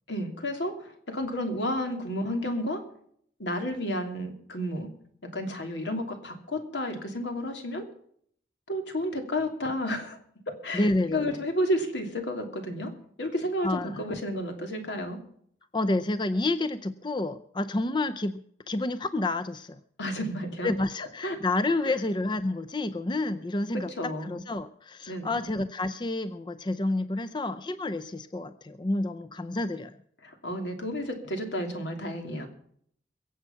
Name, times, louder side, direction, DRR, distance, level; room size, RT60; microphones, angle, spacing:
voice 1, 0.1-2.8 3.4-4.9 5.2-7.8 8.7-10.2 10.5-12.9 13.2-15.2 20.0-20.7 21.2-21.4 21.8-21.9 24.0-24.4 25.1-25.5 30.2-32.5, equal, 85° left, 5 dB, 2.8 m, -31 dB
voice 2, 10.7-11.4 13.6-14.0 15.7-19.8 20.6-30.0, left 2 dB, 25° left, 11 dB, 0.5 m, -29 dB
23.0 x 7.9 x 5.8 m, 0.64 s
head